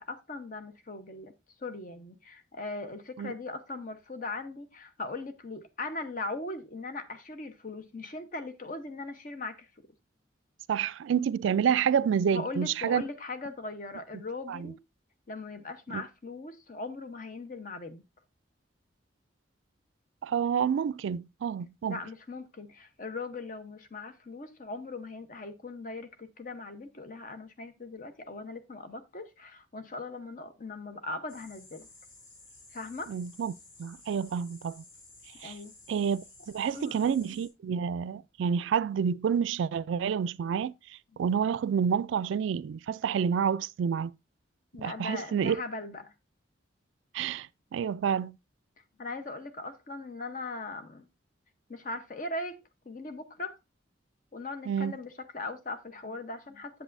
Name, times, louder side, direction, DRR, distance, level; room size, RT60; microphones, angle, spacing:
voice 1, 0.0-1.3 1.6-9.7 12.2-14.8 15.3-18.0 21.9-31.9 32.7-33.1 35.4-35.7 36.7-37.2 44.7-46.1 49.0-51.1 51.7-52.6 52.8-53.5 54.3-56.8, left 3 dB, 45° left, 0.9 m, -39 dB
voice 2, 10.7-13.0 14.1-14.7 15.9-16.0 20.2-22.0 33.1-34.8 35.4-35.5 35.9-40.7 41.2-44.1 44.8-45.6 47.1-48.3 54.7-54.9, right 7 dB, 75° right, 0.3 m, -29 dB
sound 1, 31.3-37.5, left 2 dB, 75° left, 3.1 m, -54 dB
8.1 x 7.7 x 2.6 m
head